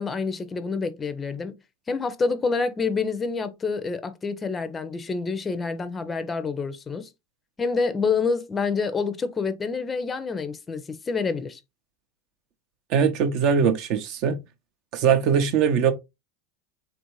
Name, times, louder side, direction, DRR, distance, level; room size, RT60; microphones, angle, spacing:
voice 1, 0.0-1.5 1.9-7.1 7.6-11.6, left 4 dB, 20° left, 0.5 m, -27 dB
voice 2, 12.9-14.4 14.9-15.9, right 7 dB, 50° right, 0.6 m, -21 dB
3.5 x 2.5 x 2.9 m
hypercardioid pair, 90°, 0 cm